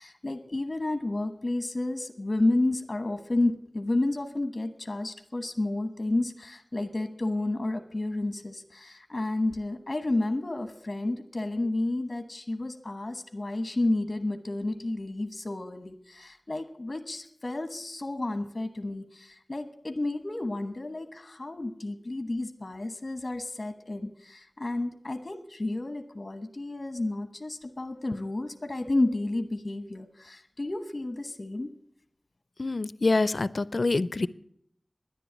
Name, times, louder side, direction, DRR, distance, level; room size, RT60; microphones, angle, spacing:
voice 1, 0.0-31.7, left 2 dB, 50° left, 8 dB, 1.1 m, -31 dB
voice 2, 32.6-34.3, left 3 dB, 75° left, 18 dB, 0.5 m, -26 dB
10.5 x 10.0 x 9.4 m, 0.71 s
wide cardioid pair, 60°, 0 cm